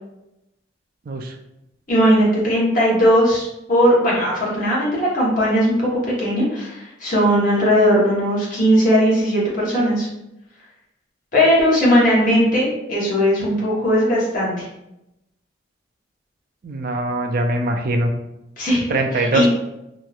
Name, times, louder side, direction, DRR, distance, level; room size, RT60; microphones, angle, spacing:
voice 1, 1.9-10.1 11.3-14.7 18.6-18.8 19.1-19.5, equal, 45° left, -5 dB, 1.0 m, -18 dB
voice 2, 16.6-18.1 18.9-19.5, right 1 dB, 50° right, 4 dB, 0.3 m, -22 dB
3.0 x 2.7 x 2.3 m, 0.89 s
head